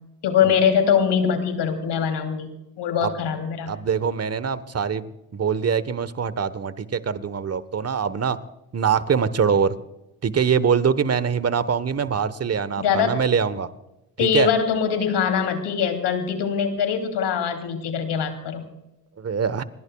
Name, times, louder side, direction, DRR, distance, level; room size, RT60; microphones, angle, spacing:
voice 1, 0.2-3.7 12.8-13.2 14.2-18.7, left 7 dB, 70° left, 6 dB, 3.2 m, -23 dB
voice 2, 3.7-8.4 8.7-9.7 10.2-13.7 14.2-14.5 19.2-19.6, right 6 dB, 35° right, 15 dB, 1.3 m, -23 dB
28.5 x 20.0 x 2.4 m, 0.92 s
hypercardioid pair, 45°, 43 cm